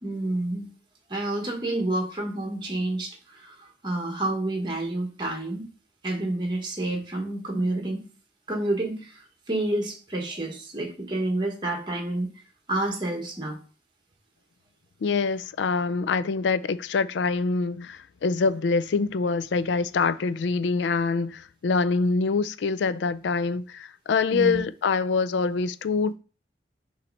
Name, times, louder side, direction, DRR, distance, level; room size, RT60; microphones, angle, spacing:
voice 1, 0.0-0.7 1.1-5.7 6.0-8.0 8.5-12.3 12.7-13.6 24.3-24.6, right 2 dB, 25° right, 1.1 m, -29 dB
voice 2, 15.0-26.1, left 4 dB, 90° left, 0.4 m, -25 dB
5.6 x 3.2 x 5.2 m
head